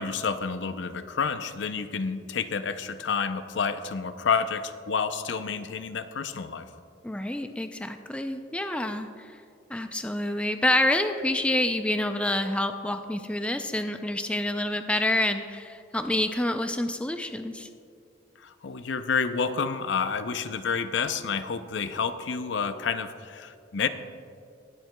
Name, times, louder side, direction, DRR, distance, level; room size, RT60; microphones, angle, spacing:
voice 1, 0.0-6.6 18.4-23.9, left 5 dB, 75° left, 11 dB, 0.5 m, -29 dB
voice 2, 7.0-9.3 9.7-17.7, left 1 dB, 5° left, 7 dB, 0.3 m, -27 dB
19.5 x 7.7 x 2.2 m, 2.4 s
head